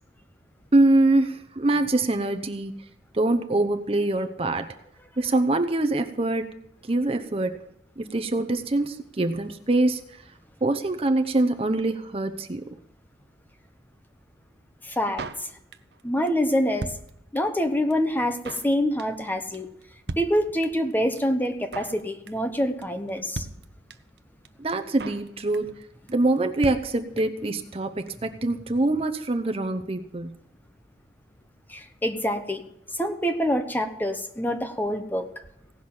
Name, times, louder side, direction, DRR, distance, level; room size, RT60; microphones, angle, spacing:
voice 1, 0.7-2.7 3.1-4.7 5.2-6.5 6.9-7.6 8.0-10.0 10.6-12.7 24.6-25.7 26.1-30.3, right 2 dB, 35° right, 7 dB, 0.8 m, -24 dB
voice 2, 14.8-15.5 16.0-16.9 17.3-19.7 20.2-23.4 31.7-32.6 32.9-35.3, equal, 10° left, 7 dB, 1.0 m, -26 dB
Drum kit, 15.2-16.0 16.3-16.4 16.5-17.6 17.9-18.0 18.2-18.7 19.0-19.3 19.5-19.6 19.8-19.9 20.1-20.9 21.2-21.3 21.4-22.0 22.3-22.5 22.8-22.9 23.1-23.2 23.3-24.2 24.4-24.5 24.7-25.3 25.5-25.8 26.1-26.2 26.4-26.5 26.6-27.5 27.7-27.8 28.0-28.1, right 3 dB, 65° right, 0.8 m, -37 dB
17.0 x 6.1 x 8.7 m, 0.77 s
head